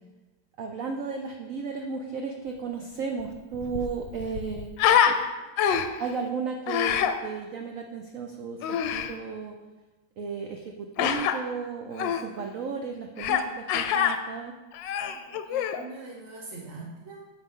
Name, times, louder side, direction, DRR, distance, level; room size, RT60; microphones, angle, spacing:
voice 1, 0.6-4.7 5.0-5.2 6.0-9.6 10.2-14.5, right 5 dB, 85° right, 3 dB, 0.7 m, -34 dB
Human voice, 3.2-3.3 3.5-5.2 5.6-6.1 6.7-7.1 8.6-9.1 11.0-11.3 12.0-12.2 13.2-13.4 13.7-14.2 14.7-15.8, left 8 dB, 70° left, 1.2 m, -25 dB
voice 2, 15.1-17.2, right 3 dB, 45° right, -4 dB, 1.1 m, -43 dB
9.6 x 6.8 x 3.7 m, 1.2 s
omnidirectional pair, 2.3 m